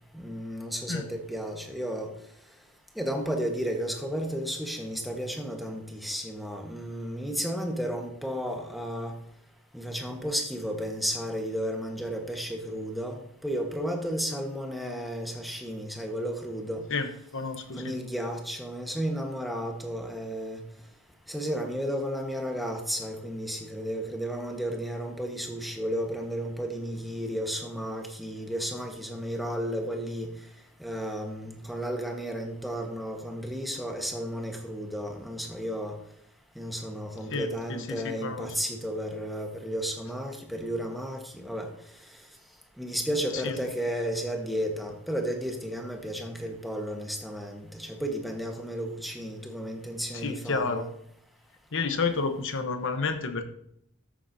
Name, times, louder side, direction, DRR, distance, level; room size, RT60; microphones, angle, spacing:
voice 1, 0.1-2.1 2.9-9.1 9.7-16.8 17.7-20.6 21.3-30.3 30.8-35.9 36.5-41.7 42.8-50.9, equal, ahead, 2 dB, 1.3 m, -33 dB
voice 2, 16.9-18.0 37.3-38.5 43.3-43.5 50.1-50.8 51.7-53.4, left 4 dB, 60° left, 8 dB, 1.0 m, -30 dB
13.5 x 7.4 x 2.8 m, 0.71 s
head